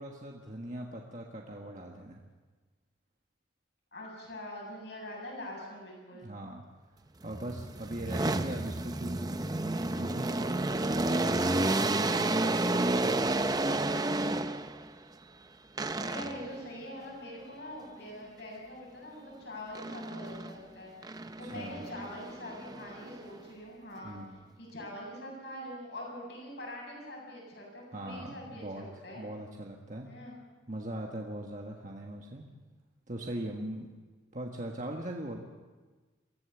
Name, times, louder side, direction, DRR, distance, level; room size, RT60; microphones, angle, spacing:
voice 1, 0.0-2.2 6.1-6.6 7.2-9.4 9.9-13.3 21.4-21.8 24.0-24.6 27.9-28.9 29.2-30.1 30.7-32.4 33.1-33.9 34.3-35.4, right 1 dB, 40° right, 0 dB, 1.5 m, -40 dB
voice 2, 3.9-6.3 16.0-24.2 24.6-29.3 30.0-30.4, left 1 dB, 60° left, -2 dB, 7.9 m, -44 dB
sound 1, 7.2-14.9 15.8-16.6 19.7-20.6 21.0-23.4, right 2 dB, 20° right, 0.6 m, -31 dB
23.5 x 15.5 x 7.2 m, 1.3 s
head